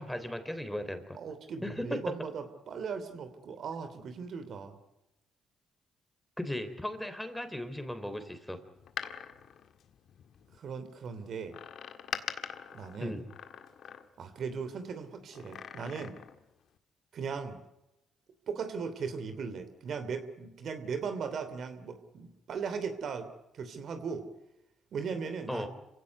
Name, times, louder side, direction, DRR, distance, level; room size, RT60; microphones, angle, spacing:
voice 1, 0.0-1.2 1.6-2.1 6.4-8.6 13.0-13.2 25.5-25.7, left 1 dB, 5° left, 9 dB, 3.3 m, -36 dB
voice 2, 1.1-4.8 10.6-11.6 12.7-13.2 14.2-16.2 17.1-17.6 18.5-23.3 23.5-24.3 24.9-25.7, right 5 dB, 60° right, 9 dB, 3.0 m, -38 dB
Door, 8.8-10.6 11.5-14.4 15.3-16.5 16.8-16.9, left 8 dB, 65° left, 1.8 m, -43 dB
26.5 x 17.0 x 9.6 m, 0.94 s
cardioid pair, 90°, 0 cm